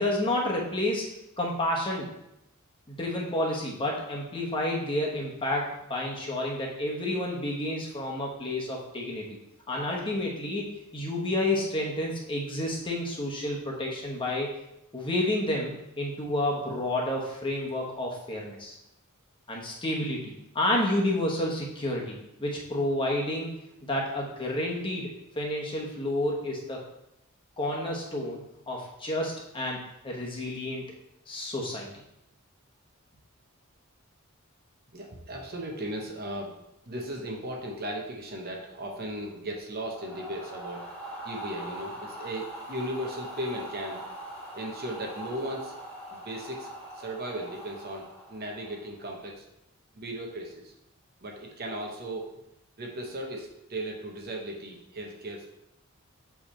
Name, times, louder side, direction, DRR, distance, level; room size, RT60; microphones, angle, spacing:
voice 1, 0.0-2.1 2.9-9.4 9.7-14.5 14.9-18.8 19.5-26.8 27.6-30.8 31.3-31.9, left 1 dB, 25° left, -2 dB, 1.2 m, -30 dB
voice 2, 34.9-36.5 36.8-40.9 41.2-44.0 44.5-45.7 46.1-46.7 47.0-49.4 49.9-50.7 51.2-52.3 52.8-55.5, right 1 dB, 45° right, 1 dB, 0.9 m, -36 dB
sound 1, 39.9-49.0, right 1 dB, ahead, 1.9 m, -42 dB
7.6 x 3.5 x 4.3 m, 0.83 s
head